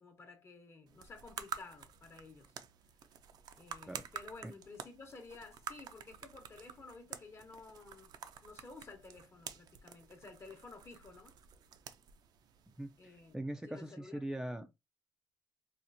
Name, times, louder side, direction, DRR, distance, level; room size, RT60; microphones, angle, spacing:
voice 1, 0.0-2.5 3.6-8.1 8.4-11.4 13.0-13.4 13.7-14.2 14.5-14.6, left 3 dB, 35° left, 0.9 m, -53 dB
sound 1, 0.9-13.3, right 8 dB, 70° right, 0.5 m, -50 dB
voice 2, 12.8-14.7, right 1 dB, 10° right, 0.4 m, -41 dB
4.2 x 2.4 x 2.6 m
cardioid pair, 125°, 7 cm